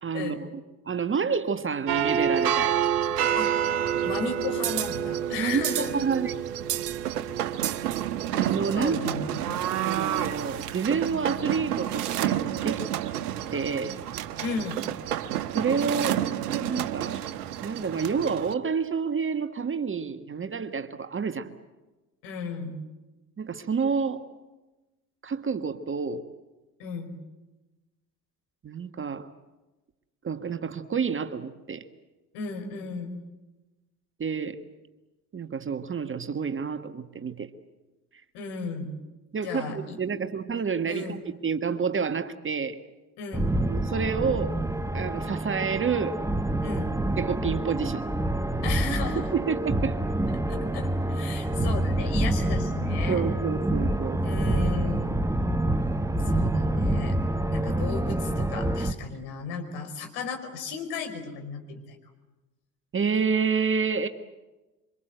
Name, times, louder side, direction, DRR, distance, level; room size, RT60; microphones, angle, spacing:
voice 1, 0.0-0.5 0.9-2.9 3.4-3.5 5.4-6.3 8.4-9.0 9.8-12.9 13.5-14.0 15.5-16.2 16.6-17.2 17.6-21.5 23.4-24.3 25.2-26.2 28.6-29.3 30.2-31.8 34.2-34.6 35.3-37.5 39.3-42.8 43.6-44.6 44.9-46.2 47.2-48.0 49.3-50.0 53.1-54.4 62.9-64.1, right 6 dB, 25° right, 9 dB, 1.4 m, -29 dB
sound 1, 1.9-18.5, right 10 dB, 65° right, 1.2 m, -29 dB
voice 2, 3.3-3.7 4.0-6.0 8.7-9.7 14.4-14.8 22.2-22.8 26.8-27.1 32.3-33.2 38.3-39.0 39.4-40.0 40.9-41.2 43.2-43.6 46.6-46.9 48.6-49.3 50.5-53.2 54.2-55.2 56.2-57.2 57.5-62.0, left 5 dB, 55° left, 4 dB, 5.2 m, -35 dB
sound 2, 43.3-58.9, right 1 dB, 5° right, 1.2 m, -27 dB
27.0 x 25.0 x 7.9 m, 1.1 s
figure-of-eight pair, 55°, 48 cm